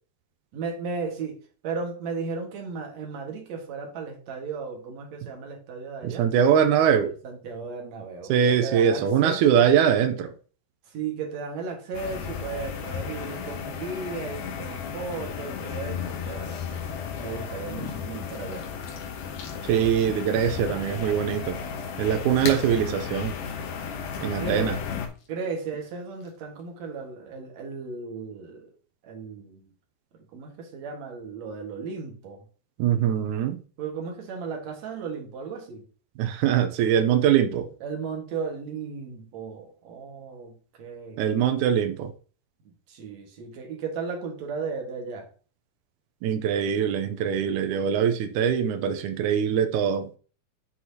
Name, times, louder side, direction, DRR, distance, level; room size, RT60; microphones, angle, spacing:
voice 1, 0.5-1.4 1.6-6.3 7.2-9.7 10.9-16.8 17.2-18.7 24.2-24.7 25.3-28.7 29.0-29.7 30.1-32.5 33.8-35.9 37.8-41.3 42.7-45.3, right 5 dB, 55° right, 2.5 m, -35 dB
voice 2, 6.0-7.1 8.3-10.3 19.6-21.6 22.0-23.4 24.2-24.7 32.8-33.6 36.2-37.7 41.2-42.1 46.2-50.1, right 8 dB, 90° right, 1.7 m, -22 dB
sound 1, 11.9-25.1, left 6 dB, 80° left, 3.0 m, -34 dB
sound 2, 18.2-27.1, left 4 dB, 60° left, 2.6 m, -45 dB
8.0 x 6.1 x 2.8 m
omnidirectional pair, 4.3 m